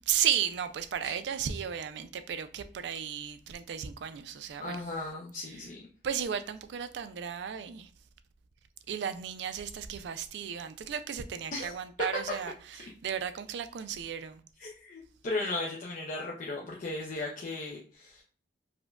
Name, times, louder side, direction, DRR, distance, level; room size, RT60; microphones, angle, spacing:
voice 1, 0.1-4.8 6.0-7.9 8.9-14.4, right 8 dB, 65° right, 0.3 m, -34 dB
voice 2, 4.6-5.8 11.5-11.7 14.6-18.2, left 2 dB, 45° left, 0.5 m, -36 dB
4.8 x 2.2 x 2.3 m
head